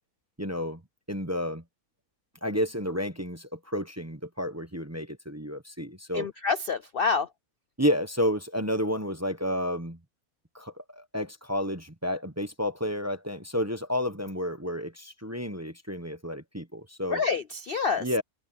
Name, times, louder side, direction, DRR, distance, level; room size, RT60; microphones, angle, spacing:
voice 1, 0.4-0.8 1.1-1.6 2.4-6.3 7.8-10.0 10.5-17.2 18.0-18.2, equal, 10° right, 0.9 m, -31 dB
voice 2, 6.1-7.3 17.1-18.0, left 5 dB, 55° left, 0.7 m, -27 dB
omnidirectional pair, 1.6 m